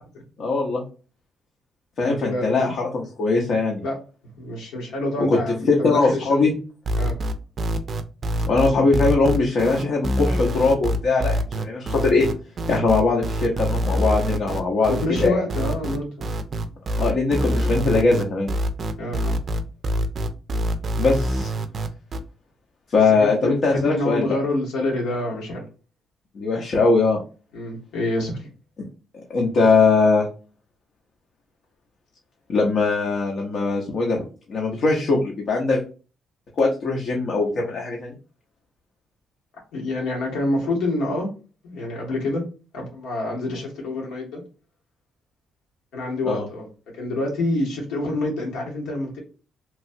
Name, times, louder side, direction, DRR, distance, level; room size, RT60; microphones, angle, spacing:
voice 1, 0.4-0.8 2.0-3.8 5.3-5.4 5.7-6.5 8.5-12.3 12.7-14.9 15.2-15.4 17.0-18.5 21.0-21.5 22.9-24.3 26.3-27.2 29.3-30.3 32.5-34.2 34.5-35.8 36.6-38.2 46.2-46.4, left 3 dB, 60° left, -1 dB, 0.7 m, -21 dB
voice 2, 2.0-2.6 3.8-4.0 4.3-6.5 7.0-7.2 14.9-16.3 19.0-19.4 23.1-25.6 27.5-28.5 39.7-41.3 41.6-42.4 42.7-44.4 45.9-46.7 46.9-49.2, left 2 dB, 90° left, -2 dB, 1.3 m, -27 dB
sound 1, 6.9-22.2, equal, 45° right, 0.4 m, -25 dB
3.0 x 2.3 x 2.6 m, 0.35 s
cardioid pair, 90°, 0 cm